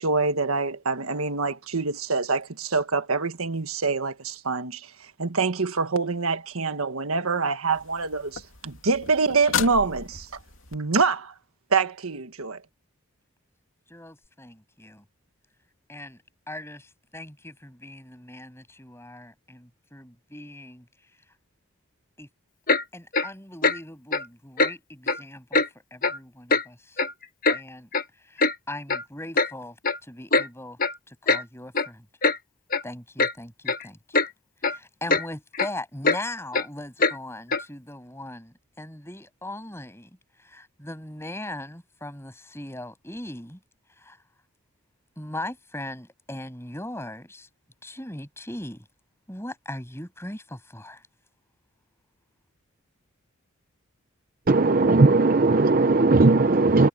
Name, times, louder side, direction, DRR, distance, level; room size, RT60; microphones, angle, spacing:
voice 1, 0.0-10.3 10.7-11.3 11.7-12.6, right 4 dB, 80° right, 1.5 m, -25 dB
sound 1, 7.7-10.8 14.2-14.3, left 7 dB, 65° left, 2.9 m, -34 dB
voice 2, 13.9-15.0 15.9-21.1 22.2-22.3 22.9-25.6 25.9-27.0 27.5-30.8 31.1-32.1 32.8-34.3 34.6-43.6 44.0-44.2 45.2-47.5 47.8-48.9 49.3-51.1, left 1 dB, 10° left, 6.9 m, -39 dB
Clock, 22.7-22.8 23.1-23.3 23.6-23.8 24.1-24.2 24.6-24.7 25.1-25.2 25.5-25.7 26.0-26.2 26.5-26.6 27.0-27.6 27.9-28.0 28.4-28.5 28.9-29.0 29.4-29.5 29.8-30.0 30.3-30.5 30.8-31.0 31.3-31.4 31.7-31.9 32.2-32.4 32.7-32.8 33.2-33.3 33.7-33.8 34.1-34.3 34.6-34.8 35.1-35.3 35.5-35.7 36.0-36.2 36.5-36.7 37.0-37.2 37.5-37.6, left 3 dB, 40° left, 1.4 m, -22 dB
voice 3, 54.5-56.9, right 3 dB, 40° right, 0.6 m, -18 dB
head